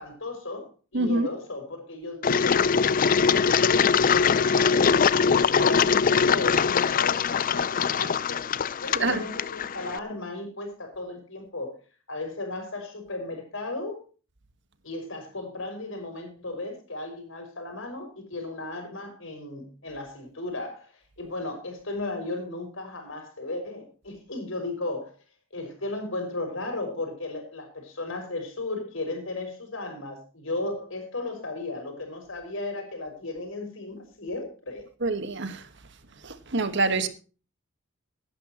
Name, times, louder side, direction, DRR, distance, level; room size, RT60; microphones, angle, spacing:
voice 1, 0.0-2.9 3.2-8.5 8.8-11.8 12.1-14.0 14.8-20.9 21.2-25.1 25.5-34.9 37.0-37.1, left 2 dB, 70° left, 5.6 m, -35 dB
voice 2, 0.9-1.3 9.0-9.2 35.0-35.6 36.2-37.1, right 3 dB, 60° right, 1.6 m, -26 dB
Engine, 2.2-10.0, left 6 dB, 45° left, 0.5 m, -22 dB
17.0 x 11.5 x 3.1 m
head